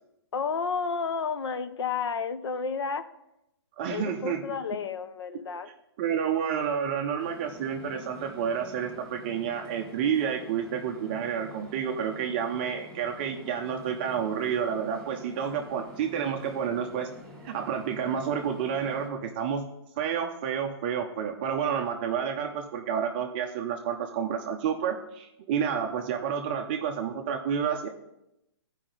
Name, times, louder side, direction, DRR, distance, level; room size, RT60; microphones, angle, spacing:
voice 1, 0.3-3.0 3.9-5.7, left 5 dB, 75° left, 11 dB, 0.6 m, -31 dB
voice 2, 3.8-4.4 6.0-17.1 17.4-19.7 20.0-27.9, right 7 dB, 25° right, 3 dB, 0.5 m, -30 dB
sound 1, 7.2-19.1, equal, 10° left, 1.3 m, -48 dB
13.0 x 4.9 x 3.8 m, 0.86 s
hypercardioid pair, 165°, 14 cm